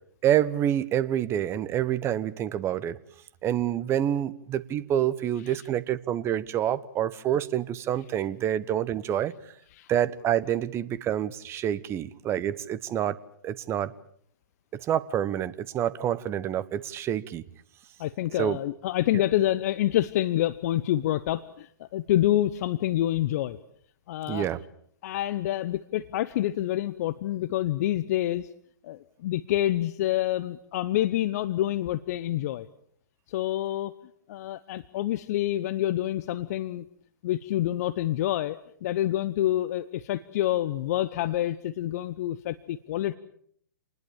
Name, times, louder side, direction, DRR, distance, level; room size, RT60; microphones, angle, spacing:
voice 1, 0.2-3.0 3.4-9.3 9.9-13.2 13.4-13.9 14.7-17.4 18.4-18.6 24.3-24.6, right 11 dB, 20° right, 15 dB, 1.1 m, -27 dB
voice 2, 18.0-23.6 24.1-24.5 25.0-28.5 28.8-32.7 33.3-33.9 34.3-36.8 37.2-43.2, left 13 dB, 45° left, 15 dB, 0.9 m, -27 dB
28.0 x 20.5 x 7.2 m, 0.65 s
hypercardioid pair, 125°, 12 cm